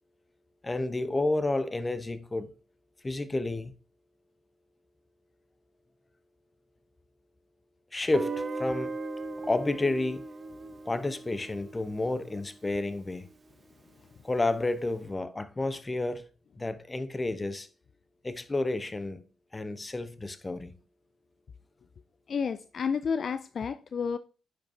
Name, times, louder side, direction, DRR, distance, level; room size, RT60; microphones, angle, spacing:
voice 1, 0.6-2.5 3.0-3.7 7.9-9.0 9.4-10.3 10.9-13.3 14.2-16.3 16.6-17.7 18.2-19.2 19.5-20.7, left 2 dB, 25° left, 0.8 m, -30 dB
Guitar, 8.1-13.0, right 3 dB, 40° right, 0.7 m, -38 dB
voice 2, 22.3-24.2, left 6 dB, 55° left, 0.3 m, -30 dB
10.0 x 5.0 x 2.7 m
hypercardioid pair, 45°, 0 cm